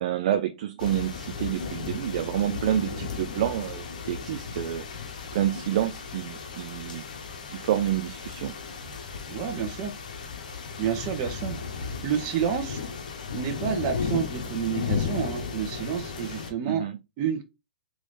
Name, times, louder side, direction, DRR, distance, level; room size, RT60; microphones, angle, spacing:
voice 1, 0.0-4.8 5.3-7.0 7.5-8.6 16.7-17.0, right 11 dB, 50° right, 0.3 m, -28 dB
sound 1, 0.8-16.5, left 5 dB, 70° left, 0.9 m, -35 dB
voice 2, 9.3-9.9 10.8-11.6 12.0-12.8 13.3-16.8 17.2-17.4, right 8 dB, 35° right, 0.8 m, -29 dB
3.8 x 2.6 x 3.1 m
hypercardioid pair, 140°, 5 cm